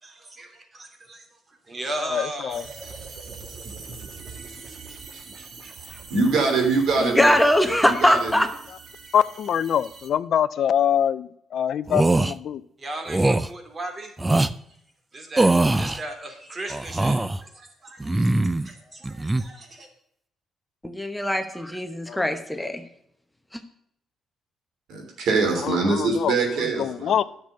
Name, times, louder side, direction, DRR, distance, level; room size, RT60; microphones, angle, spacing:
voice 1, 0.0-2.6 2.8-2.9 12.8-14.1 14.7-14.8 15.1-19.9, right 1 dB, 35° right, 4 dB, 2.9 m, -37 dB
voice 2, 2.0-2.7 9.1-12.6 22.1-22.7 25.6-27.2, left 9 dB, 65° left, 16 dB, 0.4 m, -25 dB
sound 1, 2.5-10.1, right 4 dB, 55° right, 1.8 m, -42 dB
voice 3, 6.1-7.4 7.8-8.3 24.9-27.1, right 3 dB, 75° right, 3 dB, 3.2 m, -23 dB
voice 4, 7.0-8.5 20.8-22.9 23.5-23.6, equal, 5° left, 7 dB, 1.0 m, -21 dB
sound 2, 11.9-12.3 13.1-13.5 14.2-14.5 15.4-16.0 16.7-17.4 18.0-18.7 19.0-19.4, right 2 dB, 15° right, 0.5 m, -21 dB
10.5 x 6.7 x 6.8 m, 0.72 s
cardioid pair, 90°, 0 cm